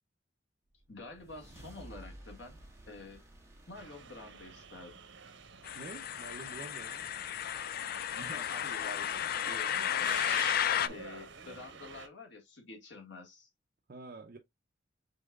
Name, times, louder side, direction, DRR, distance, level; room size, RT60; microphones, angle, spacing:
sound 1, 0.8-5.3, right 1 dB, 15° right, 1.5 m, -54 dB
voice 1, 0.9-2.6 2.9-3.2 3.7-4.9 8.2-9.1 9.4-10.6 10.9-13.5, left 2 dB, 70° left, 1.7 m, -48 dB
sound 2, 3.8-12.1, right 6 dB, 80° right, 0.9 m, -48 dB
sound 3, 5.6-10.9, left 10 dB, 55° left, 0.3 m, -33 dB
voice 2, 5.8-7.0 10.8-11.0 13.9-14.4, right 3 dB, 50° right, 0.6 m, -47 dB
5.4 x 3.9 x 2.3 m
head